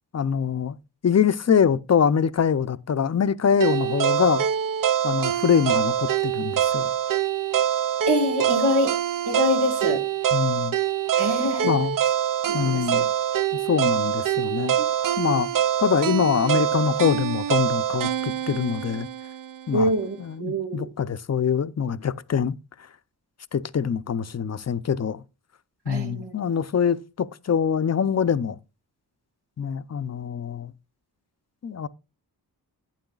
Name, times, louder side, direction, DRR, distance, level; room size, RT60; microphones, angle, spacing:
voice 1, 0.1-0.7 1.0-4.4 5.0-6.9 10.3-10.8 11.6-12.0 12.5-13.1 13.7-14.7 15.2-15.5 15.8-19.1 19.7-19.9 20.2-22.6 23.5-25.2 25.9-28.6 29.6-30.7 31.6-31.9, left 7 dB, 45° left, 0.6 m, -24 dB
sound 1, 3.6-19.7, right 10 dB, 55° right, 0.5 m, -25 dB
voice 2, 8.1-9.0 9.3-10.0 11.2-11.7 12.5-13.0 14.8-14.9 15.2-15.4 19.7-20.9 25.9-26.3, equal, 85° right, 1.8 m, -25 dB
11.5 x 8.8 x 2.3 m
cardioid pair, 60°, 38 cm